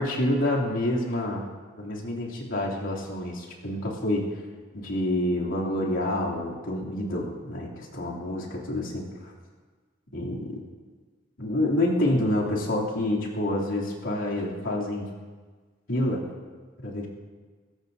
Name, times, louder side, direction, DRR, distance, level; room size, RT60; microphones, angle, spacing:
voice 1, 0.0-1.5 1.8-4.2 4.7-9.3 10.1-10.6 11.4-15.1 15.9-16.2 16.8-17.1, left 1 dB, 75° left, -4 dB, 3.0 m, -28 dB
22.0 x 16.0 x 2.7 m, 1.4 s
head